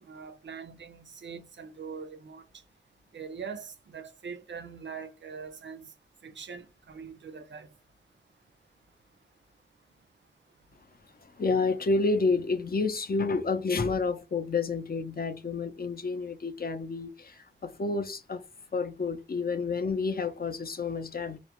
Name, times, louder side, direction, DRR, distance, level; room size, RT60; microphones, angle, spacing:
voice 1, 0.0-2.4 3.1-5.9 6.2-7.7, right 6 dB, 80° right, 0.4 m, -42 dB
voice 2, 11.4-18.4 18.7-21.4, left 4 dB, 55° left, 0.5 m, -29 dB
2.3 x 2.0 x 2.9 m
wide cardioid pair, 45°, 18 cm